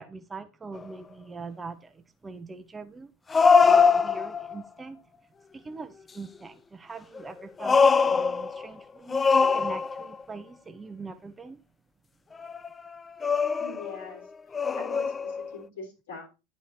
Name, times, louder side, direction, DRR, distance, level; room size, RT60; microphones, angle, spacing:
voice 1, 0.0-3.1 3.6-5.0 5.5-9.2 9.5-11.6, right 4 dB, 15° right, 0.9 m, -42 dB
sound 1, 0.8-0.9 3.3-4.6 7.1-8.6 9.1-10.2 12.4-12.7 13.2-14.1 14.5-15.5, left 5 dB, 20° left, 0.3 m, -22 dB
voice 2, 13.6-14.2 14.7-16.3, left 3 dB, 65° left, 3.9 m, -42 dB
11.5 x 4.7 x 4.3 m
figure-of-eight pair, 85°, 0 cm